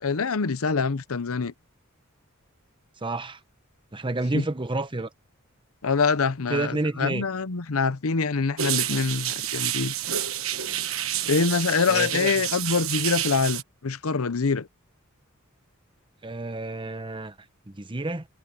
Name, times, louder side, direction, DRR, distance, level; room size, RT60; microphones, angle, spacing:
voice 1, 0.0-1.5 4.3-4.4 5.8-9.9 11.3-14.7, left 4 dB, 80° left, 0.8 m, -25 dB
voice 2, 3.0-3.4 3.9-5.1 6.5-7.2 11.9-12.3 16.2-17.3 17.7-18.3, right 2 dB, 25° right, 1.0 m, -29 dB
sound 1, 8.6-13.6, right 11 dB, 70° right, 1.3 m, -29 dB
head